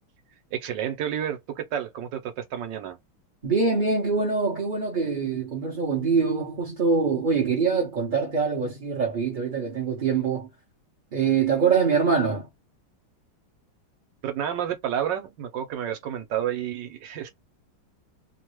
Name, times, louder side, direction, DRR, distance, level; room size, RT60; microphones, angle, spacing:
voice 1, 0.5-3.0 14.2-17.3, right 9 dB, 70° right, 1.4 m, -30 dB
voice 2, 3.4-10.5 11.1-12.5, right 5 dB, 40° right, 0.7 m, -24 dB
3.2 x 2.3 x 3.0 m
omnidirectional pair, 2.2 m